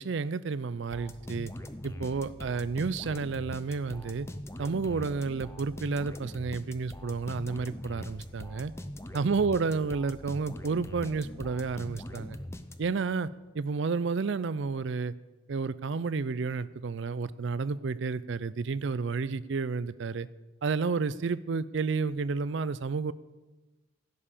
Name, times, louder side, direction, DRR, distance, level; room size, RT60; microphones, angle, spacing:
voice 1, 0.0-1.5 1.8-4.3 4.6-8.7 9.1-12.4 12.8-13.3 13.5-15.1 15.5-20.3 20.6-23.1, right 4 dB, 65° right, 17 dB, 0.4 m, -31 dB
sound 1, 0.9-13.1, left 1 dB, 15° left, 0.5 m, -42 dB
15.5 x 5.6 x 6.7 m, 1.2 s
head